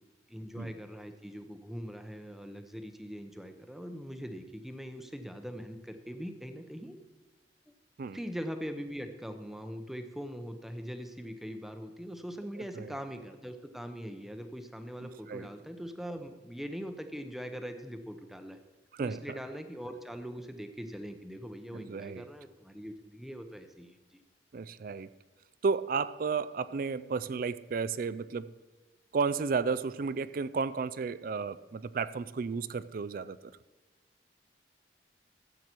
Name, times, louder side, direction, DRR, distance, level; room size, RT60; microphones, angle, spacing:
voice 1, 0.3-7.0 8.1-18.6 19.0-24.2, equal, ahead, 7 dB, 0.7 m, -42 dB
voice 2, 15.0-15.5 18.9-19.2 21.7-22.3 24.5-25.1 25.6-28.5 29.1-33.5, right 5 dB, 50° right, 15 dB, 0.4 m, -33 dB
13.5 x 8.3 x 4.5 m, 1.2 s
head